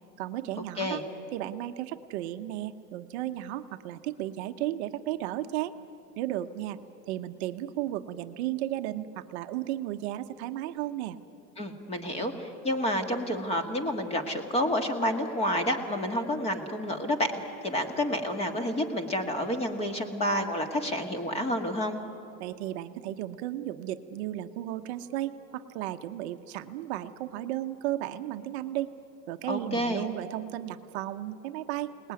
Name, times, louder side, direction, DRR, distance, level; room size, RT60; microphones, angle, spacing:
voice 1, 0.2-1.0 1.3-5.7 6.2-6.8 7.1-11.2 22.4-28.9 29.3-32.1, right 13 dB, 40° right, 8 dB, 1.1 m, -34 dB
voice 2, 11.6-17.3 17.6-22.0 29.5-30.1, left 1 dB, 10° left, 6 dB, 1.8 m, -29 dB
28.5 x 20.0 x 9.6 m, 2.7 s
supercardioid pair, 155°, 49 cm